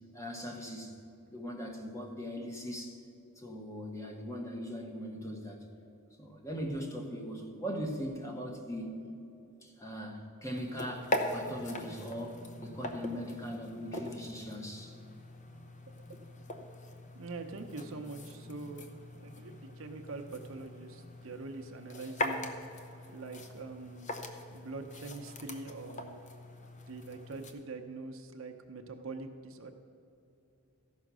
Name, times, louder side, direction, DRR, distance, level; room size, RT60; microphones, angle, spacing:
voice 1, 0.1-1.0 1.3-3.0 3.4-5.6 6.2-9.0 9.6-15.0, equal, 15° left, 2 dB, 1.2 m, -40 dB
sound 1, 10.5-27.5, left 1 dB, 35° left, 0.7 m, -41 dB
voice 2, 17.1-18.9 19.2-22.5 23.1-24.1 24.5-26.2 26.8-29.7, right 3 dB, 70° right, 5 dB, 0.7 m, -44 dB
14.0 x 5.7 x 6.1 m, 2.7 s
head